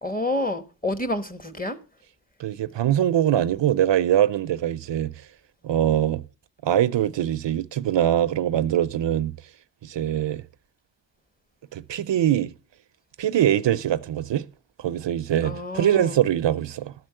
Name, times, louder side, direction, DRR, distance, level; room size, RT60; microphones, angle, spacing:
voice 1, 0.0-1.8 15.4-16.2, left 1 dB, 20° left, 1.2 m, -29 dB
voice 2, 2.4-5.1 5.6-6.2 6.6-9.3 9.8-10.4 11.7-12.5 13.2-14.5 14.8-16.9, right 11 dB, 75° right, 0.6 m, -23 dB
12.5 x 4.5 x 7.6 m
wide cardioid pair, 65°, 44 cm